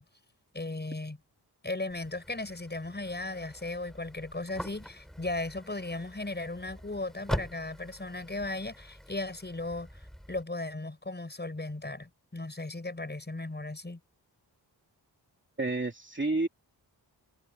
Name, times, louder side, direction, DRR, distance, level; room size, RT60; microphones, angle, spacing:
voice 1, 0.5-1.2 1.6-9.9 10.3-14.0, left 2 dB, 25° left, 6.3 m, -36 dB
sound 1, 1.9-10.4, equal, ahead, 5.9 m, -43 dB
voice 2, 15.6-16.5, right 2 dB, 25° right, 3.1 m, -29 dB
wide cardioid pair, 105°, 42 cm